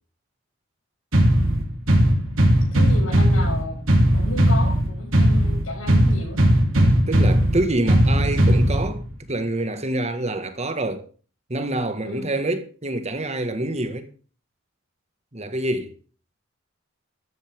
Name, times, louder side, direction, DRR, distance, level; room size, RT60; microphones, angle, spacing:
sound 1, 1.1-9.1, equal, 80° right, 3.7 m, -18 dB
voice 1, 2.7-3.8 4.1-6.5 12.0-12.3, left 2 dB, 85° left, 6.6 m, -32 dB
voice 2, 6.7-9.0 9.3-11.1 11.5-14.1 15.3-15.9, right 1 dB, 35° right, 1.8 m, -26 dB
13.0 x 13.0 x 3.7 m
head